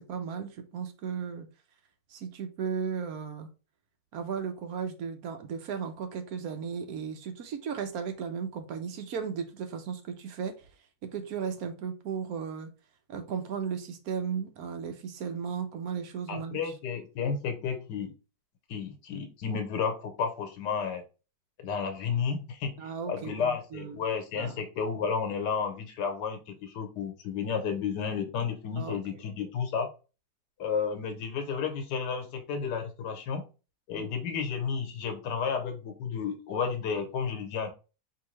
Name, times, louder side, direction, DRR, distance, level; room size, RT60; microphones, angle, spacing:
voice 1, 0.0-1.5 2.1-3.5 4.1-10.7 11.0-12.7 13.1-16.7 22.8-24.0 24.3-24.7 28.8-29.0 33.9-34.1, right 6 dB, 65° right, 7 dB, 1.2 m, -35 dB
voice 2, 16.3-18.1 18.7-21.0 21.6-29.9 30.6-33.4 33.9-37.7, left 6 dB, 90° left, 6 dB, 1.5 m, -32 dB
4.7 x 3.1 x 3.1 m, 0.33 s
omnidirectional pair, 1.8 m